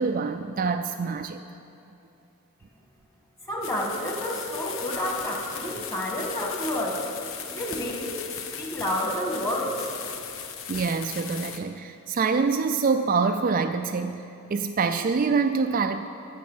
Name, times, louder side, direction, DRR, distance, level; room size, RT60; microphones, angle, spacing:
voice 1, 0.0-1.4 10.7-14.2 14.5-16.1, right 5 dB, 40° right, 7 dB, 0.3 m, -25 dB
voice 2, 3.5-7.1 7.5-8.2 8.6-9.9, equal, 15° left, -1 dB, 1.7 m, -29 dB
sound 1, 3.6-11.6, left 7 dB, 65° left, 0.8 m, -37 dB
12.5 x 6.8 x 7.2 m, 2.9 s
head